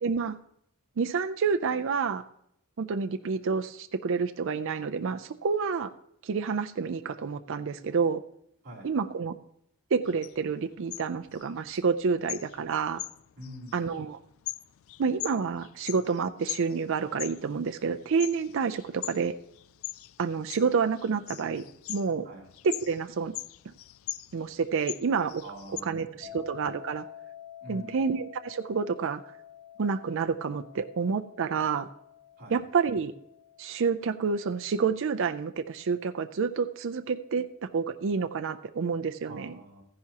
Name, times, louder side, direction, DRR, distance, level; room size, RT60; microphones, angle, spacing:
voice 1, 0.0-0.4 1.0-2.2 2.8-5.9 6.2-8.2 8.8-9.4 9.9-13.0 13.7-14.2 15.0-19.3 20.2-22.3 22.6-23.3 23.7-23.8 24.3-25.4 25.8-27.1 27.7-29.2 29.8-31.9 32.5-33.1 33.6-39.6, right 5 dB, 60° right, 9 dB, 0.4 m, -29 dB
sound 1, 10.1-25.8, left 15 dB, 60° left, 0.3 m, -42 dB
voice 2, 13.4-13.8 22.2-22.5 25.4-26.5 27.6-28.0 32.4-32.6 39.2-39.8, equal, 45° right, -3 dB, 3.5 m, -45 dB
sound 2, 26.2-37.1, left 11 dB, 40° left, 3.7 m, -50 dB
14.0 x 10.5 x 2.9 m, 0.74 s
head